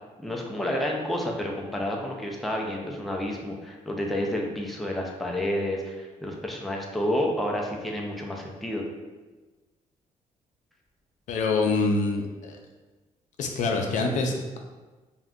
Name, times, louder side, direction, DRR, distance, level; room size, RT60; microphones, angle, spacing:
voice 1, 0.2-8.8, left 1 dB, ahead, -1 dB, 0.4 m, -30 dB
voice 2, 11.3-12.6 13.4-14.6, left 3 dB, 70° left, 2 dB, 0.4 m, -25 dB
2.5 x 2.2 x 3.5 m, 1.2 s
cardioid pair, 105°, 13 cm